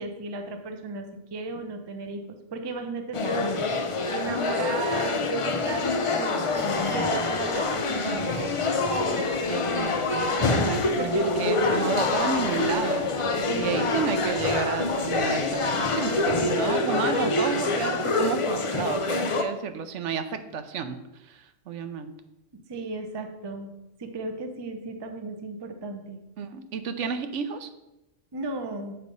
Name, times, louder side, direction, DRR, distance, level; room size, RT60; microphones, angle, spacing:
voice 1, 0.0-8.2 13.5-13.8 22.7-23.7 24.0-26.2 28.3-29.0, right 3 dB, 30° right, 5 dB, 0.5 m, -35 dB
sound 1, 3.1-19.4, left 3 dB, 50° left, 0.4 m, -26 dB
sound 2, 6.5-16.7, left 5 dB, 90° left, 1.1 m, -42 dB
voice 2, 7.9-8.6 8.9-13.1 13.5-21.0 21.3-22.1 26.4-27.7, right 6 dB, 75° right, 9 dB, 0.9 m, -32 dB
7.9 x 3.3 x 5.2 m, 0.93 s
omnidirectional pair, 1.3 m